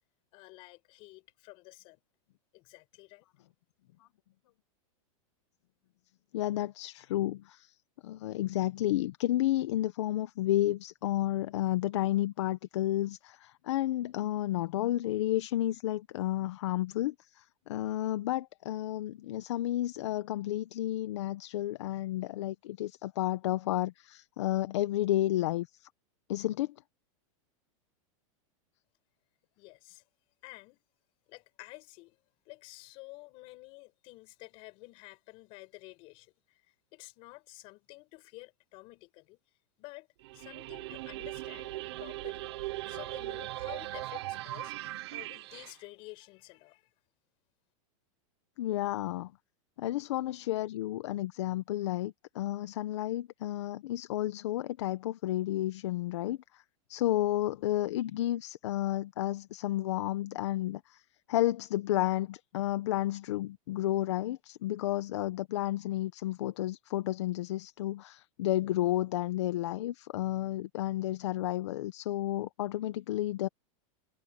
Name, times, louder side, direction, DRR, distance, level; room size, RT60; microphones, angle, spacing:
voice 1, 0.3-2.0 2.5-3.3 29.6-30.0 30.4-30.8 31.3-32.2 32.5-36.6 36.9-39.4 39.8-40.1 40.3-42.6 42.9-44.7 45.1-46.9, left 23 dB, 30° left, 7.0 m, -51 dB
voice 2, 6.3-7.7 8.0-25.9 26.3-26.7 48.6-49.3 49.8-56.6 56.9-61.0 61.3-73.5, left 14 dB, 60° left, 1.0 m, -31 dB
sound 1, 40.2-45.7, right 17 dB, 50° right, 1.0 m, -39 dB
supercardioid pair, 180°, 17 cm